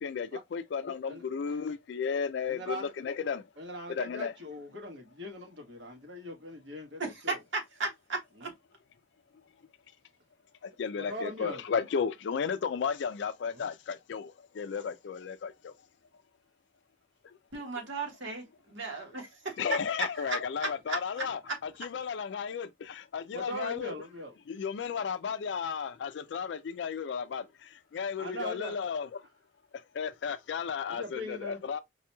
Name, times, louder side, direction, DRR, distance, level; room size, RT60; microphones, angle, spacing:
voice 1, 0.0-3.4 3.9-4.3 10.6-15.7 19.6-23.9 24.5-29.1 29.7-31.8, left 6 dB, 65° left, 0.3 m, -34 dB
voice 2, 1.1-1.6 2.4-2.9 3.6-7.4 8.4-8.5 11.0-11.6 13.5-13.7 23.3-24.4 28.2-28.8 30.9-31.6, equal, 70° right, 1.3 m, -41 dB
voice 3, 7.0-8.5 17.5-19.6 20.2-21.5, right 3 dB, 90° right, 1.4 m, -36 dB
4.7 x 2.9 x 2.2 m
head